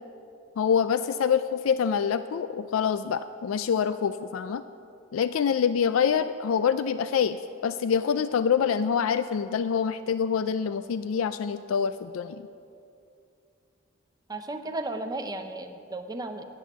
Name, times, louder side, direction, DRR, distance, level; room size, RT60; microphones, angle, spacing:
voice 1, 0.6-4.6 5.1-12.4, left 7 dB, 90° left, 12 dB, 0.4 m, -26 dB
voice 2, 14.3-16.4, right 2 dB, 20° right, 6 dB, 0.7 m, -34 dB
10.5 x 7.7 x 8.4 m, 2.6 s
head